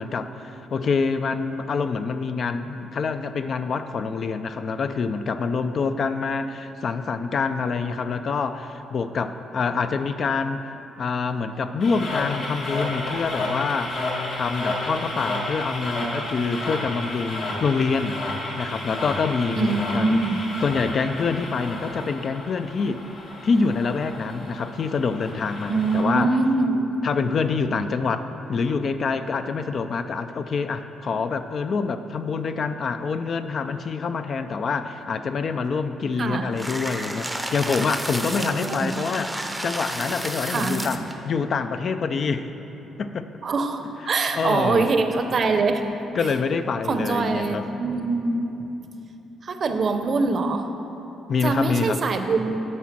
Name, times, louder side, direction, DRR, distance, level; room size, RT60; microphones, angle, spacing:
voice 1, 0.0-10.7 11.0-14.0 14.3-18.2 18.6-20.2 20.6-23.0 23.4-26.4 27.0-42.5 43.0-43.3 44.0-44.9 46.1-47.7 51.3-52.0, left 5 dB, 50° left, 10 dB, 0.4 m, -26 dB
sound 1, 11.8-26.0, left 2 dB, 70° left, 1.7 m, -32 dB
voice 2, 19.6-20.4 25.7-26.9 36.2-36.5 38.4-39.0 40.4-41.1 43.4-43.8 44.1-45.8 46.9-48.5 49.4-50.7 51.4-52.6, right 3 dB, 50° right, 6 dB, 0.6 m, -23 dB
sound 2, 36.6-41.1, right 1 dB, 5° right, 0.6 m, -31 dB
9.6 x 4.2 x 6.0 m, 3.0 s
cardioid pair, 90°, 0 cm